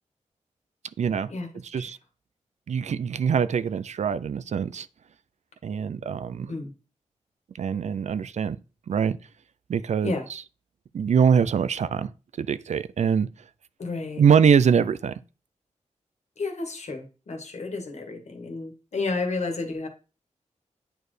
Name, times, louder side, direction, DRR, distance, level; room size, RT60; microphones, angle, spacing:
voice 1, 1.0-1.3 1.7-2.0 2.7-4.9 5.6-6.5 7.6-8.6 8.9-9.2 9.7-10.1 10.9-12.1 12.4-13.3 14.2-15.1, right 7 dB, 65° right, 0.4 m, -23 dB
voice 2, 13.8-14.2 16.4-19.9, left 3 dB, 65° left, 1.6 m, -31 dB
8.9 x 4.4 x 3.2 m
wide cardioid pair, 90°, 13 cm